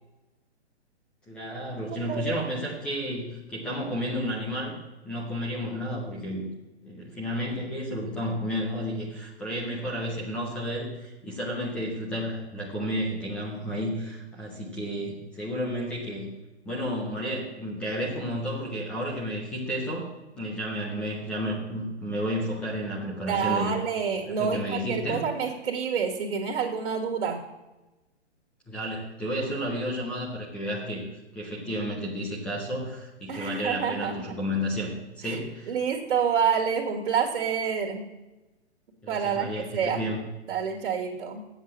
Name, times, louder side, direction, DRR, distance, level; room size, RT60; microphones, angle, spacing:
voice 1, 1.3-4.7 5.0-6.5 6.8-16.3 16.6-20.1 20.4-23.7 24.1-25.2 28.7-31.0 31.3-34.9 35.2-35.7 39.0-40.2, equal, 5° left, -4 dB, 0.4 m, -32 dB
voice 2, 2.0-2.4 23.3-27.4 33.3-34.1 35.2-35.4 35.7-38.1 39.1-40.0 40.5-41.4, right 7 dB, 60° right, 1 dB, 1.8 m, -28 dB
8.2 x 7.5 x 7.4 m, 1.1 s
hypercardioid pair, 150°, 34 cm